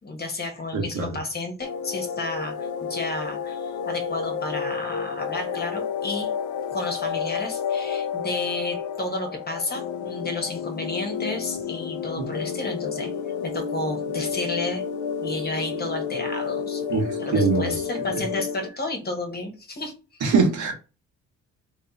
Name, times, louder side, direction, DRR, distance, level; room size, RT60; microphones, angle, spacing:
voice 1, 0.0-6.3 6.7-13.1 13.4-14.8 15.2-20.2, left 2 dB, 30° left, 1.3 m, -32 dB
voice 2, 0.7-1.1 12.2-12.3 16.9-17.7 20.2-20.7, right 4 dB, 75° right, 1.4 m, -22 dB
sound 1, 1.6-18.7, left 7 dB, 75° left, 0.6 m, -30 dB
3.1 x 2.9 x 4.0 m
cardioid pair, 90°, 30 cm